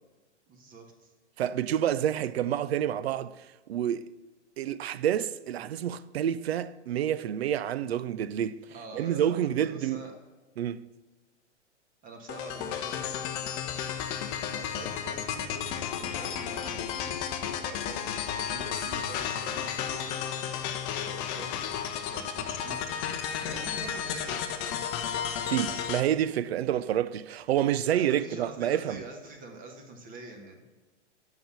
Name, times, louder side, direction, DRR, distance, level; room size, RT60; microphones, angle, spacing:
voice 1, 0.5-1.1 8.7-10.1 12.0-13.2 14.4-20.1 21.0-21.6 22.1-24.8 27.8-30.6, right 2 dB, 25° right, 1.5 m, -45 dB
voice 2, 1.4-3.3 3.7-4.1 4.6-8.6 8.9-10.0 10.6-10.8 25.5-29.0, right 10 dB, 60° right, 0.5 m, -28 dB
sound 1, 12.3-26.0, left 8 dB, 30° left, 0.7 m, -33 dB
7.7 x 5.9 x 6.9 m
figure-of-eight pair, 110°, 36 cm